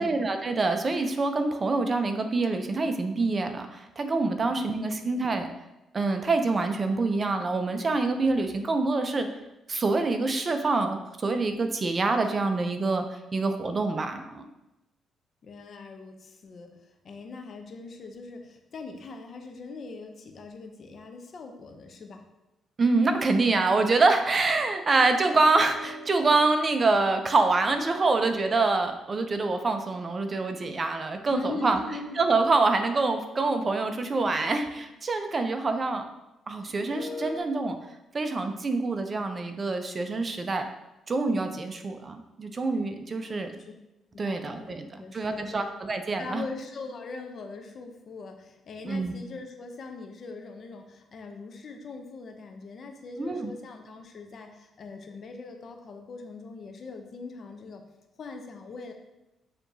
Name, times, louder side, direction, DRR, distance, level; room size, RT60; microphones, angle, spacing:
voice 1, 0.0-5.5 5.9-9.3 9.7-13.0 13.3-14.5 22.8-31.8 32.2-36.0 36.5-37.8 38.1-40.7 41.1-43.5 44.2-44.9 45.1-46.5 48.8-49.1 53.2-53.5, right 3 dB, 35° right, 6 dB, 0.5 m, -26 dB
voice 2, 4.4-5.0 15.4-22.2 31.3-32.2 43.2-43.7 44.1-45.7 46.2-57.8 58.2-58.9, left 4 dB, 50° left, 4 dB, 0.6 m, -41 dB
sound 1, 25.0-29.5 31.2-35.4 36.7-37.4, left 1 dB, 15° left, 0.8 m, -45 dB
6.7 x 2.8 x 2.7 m, 0.96 s
cardioid pair, 90°, 0 cm